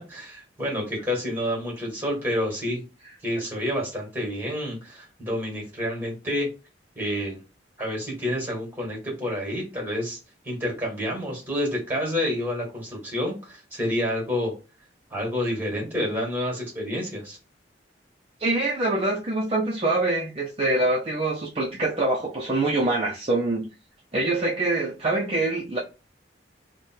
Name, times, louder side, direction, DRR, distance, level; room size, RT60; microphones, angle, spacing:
voice 1, 0.1-2.8 3.2-6.5 6.9-7.4 7.8-10.2 10.4-14.5 15.1-17.4, left 1 dB, 10° right, 1.6 m, -29 dB
voice 2, 18.4-23.7 24.1-25.8, right 2 dB, 30° right, 0.5 m, -24 dB
3.3 x 2.2 x 4.3 m
head